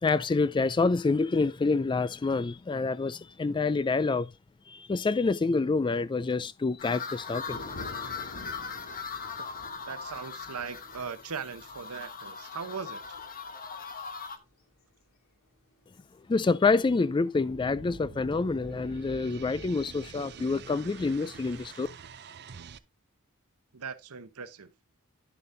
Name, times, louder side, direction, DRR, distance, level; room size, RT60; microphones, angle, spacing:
voice 1, 0.0-4.3 4.7-7.6 16.3-21.9, left 3 dB, 20° left, 0.3 m, -27 dB
sound 1, 6.8-14.4, left 5 dB, 40° left, 1.1 m, -40 dB
sound 2, 7.5-14.2 14.6-14.7 15.8-16.3, left 2 dB, 65° left, 2.9 m, -48 dB
voice 2, 9.9-13.0 23.7-24.7, right 5 dB, 75° right, 0.9 m, -39 dB
sound 3, 17.5-22.8, right 5 dB, 50° right, 0.5 m, -46 dB
10.5 x 7.0 x 2.6 m
head